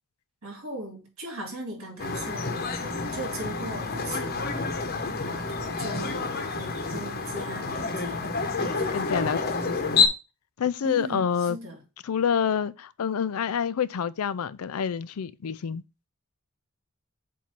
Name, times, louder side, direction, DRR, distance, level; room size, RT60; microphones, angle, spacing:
voice 1, 0.4-8.3 8.6-9.0 10.8-11.8, right 1 dB, 70° right, 3.0 m, -39 dB
sound 1, 2.0-10.1, left 4 dB, 45° left, 0.9 m, -28 dB
voice 2, 8.9-10.1 10.6-11.6 12.0-15.8, left 7 dB, 80° left, 0.4 m, -28 dB
7.5 x 2.7 x 5.8 m
head